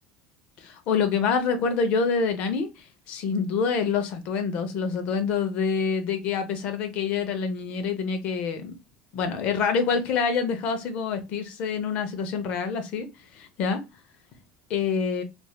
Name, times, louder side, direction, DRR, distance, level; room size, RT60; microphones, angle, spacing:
voice 1, 0.6-8.7 9.1-13.1 13.3-13.8 14.7-15.2, left 5 dB, 50° left, 0.7 m, -26 dB
3.2 x 2.6 x 2.3 m
cardioid pair, 155°, 3 cm